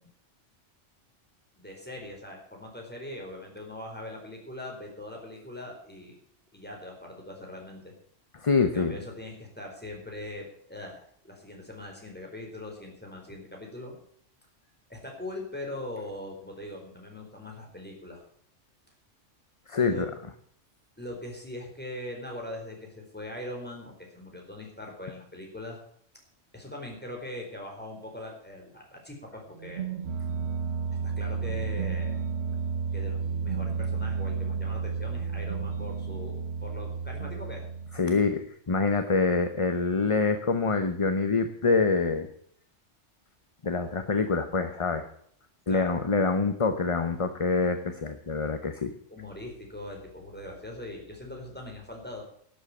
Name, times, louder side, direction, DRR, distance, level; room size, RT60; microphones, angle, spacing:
voice 1, 1.6-6.2 6.5-7.9 8.6-14.0 14.9-18.2 19.8-20.1 21.0-25.8 26.5-29.9 31.0-32.2 32.9-37.7 45.7-45.9 49.1-52.2, left 1 dB, 10° left, 0 dB, 4.4 m, -41 dB
voice 2, 8.3-9.0 19.7-20.1 37.9-42.3 43.6-45.1 45.7-48.9, left 4 dB, 30° left, 8 dB, 0.8 m, -26 dB
sound 1, 29.6-38.4, right 5 dB, 65° right, 1.0 m, -32 dB
12.0 x 8.1 x 8.5 m, 0.65 s
omnidirectional pair, 1.3 m